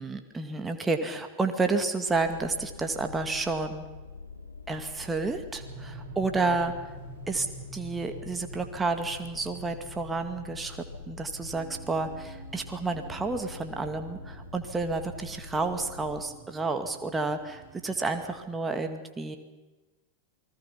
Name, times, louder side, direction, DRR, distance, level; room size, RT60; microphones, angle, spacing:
voice 1, 0.0-3.8 4.7-6.7 7.3-7.5 7.7-19.4, right 3 dB, 15° right, 6 dB, 2.2 m, -30 dB
sound 1, 2.1-16.3, left 4 dB, 80° left, 2.6 m, -45 dB
sound 2, 5.6-18.4, right 4 dB, 50° right, 4.2 m, -48 dB
28.5 x 20.5 x 5.8 m, 1.1 s
figure-of-eight pair, 90°, 0 cm